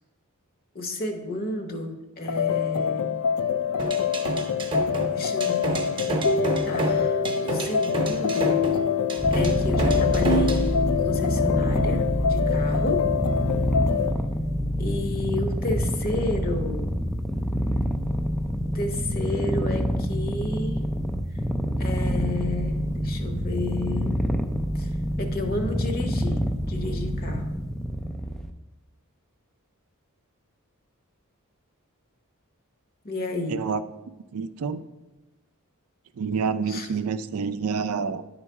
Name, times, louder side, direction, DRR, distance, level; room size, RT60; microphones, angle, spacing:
voice 1, 0.7-3.1 5.1-8.6 9.3-13.1 14.8-16.9 18.7-20.8 21.8-24.2 24.7-24.9 25.2-26.4 26.7-27.5 33.0-33.6 36.7-36.9, left 2 dB, 40° left, 4 dB, 0.9 m, -31 dB
sound 1, 2.3-14.2, left 6 dB, 75° left, 0.4 m, -25 dB
sound 2, 3.8-10.7, right 2 dB, 20° right, 0.8 m, -29 dB
Purr, 9.2-28.5, equal, 5° left, 0.3 m, -27 dB
voice 2, 33.5-33.8 34.3-34.8 36.2-38.2, right 5 dB, 75° right, 11 dB, 0.4 m, -28 dB
9.9 x 3.9 x 4.6 m, 1.1 s
head